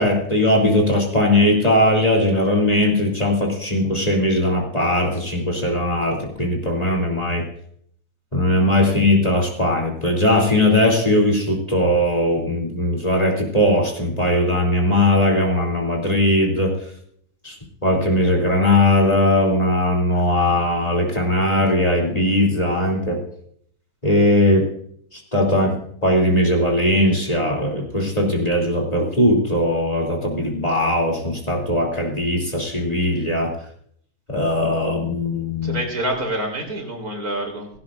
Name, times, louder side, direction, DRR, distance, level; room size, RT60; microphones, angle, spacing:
voice 1, 0.0-7.4 8.3-16.8 17.4-17.5 17.8-23.2 24.0-24.7 25.1-33.5 34.3-35.8, left 1 dB, 25° left, -1 dB, 2.9 m, -19 dB
voice 2, 35.6-37.7, right 1 dB, 85° right, 1 dB, 4.0 m, -27 dB
17.0 x 17.0 x 2.5 m, 0.63 s
omnidirectional pair, 1.5 m